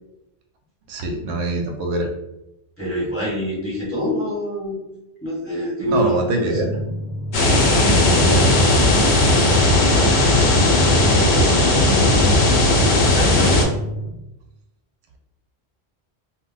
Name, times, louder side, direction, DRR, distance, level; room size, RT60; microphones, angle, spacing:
voice 1, 0.9-2.1 5.8-6.7 7.9-8.6, right 1 dB, 85° right, 2 dB, 0.9 m, -24 dB
voice 2, 2.8-4.8 5.2-6.7 9.9-10.6 11.0-13.7, equal, 15° left, -8 dB, 1.2 m, -27 dB
sound 1, 6.5-14.1, right 1 dB, 40° left, 0.5 m, -31 dB
sound 2, 7.3-13.6, left 1 dB, 80° left, 1.0 m, -16 dB
2.2 x 2.2 x 3.7 m, 0.88 s
omnidirectional pair, 1.1 m